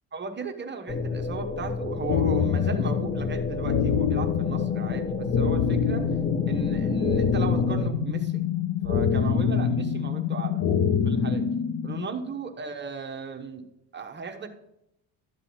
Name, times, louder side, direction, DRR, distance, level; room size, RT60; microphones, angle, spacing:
voice 1, 0.1-6.0 6.5-8.5 8.8-10.6 11.0-11.4 11.8-13.7 13.9-14.5, right 5 dB, 25° right, 4 dB, 0.9 m, -36 dB
sound 1, 0.9-7.9, left 3 dB, 20° left, 0.7 m, -31 dB
sound 2, 2.1-12.1, left 7 dB, 50° left, 1.0 m, -25 dB
12.5 x 7.8 x 4.2 m, 0.83 s
cardioid pair, 135°, 39 cm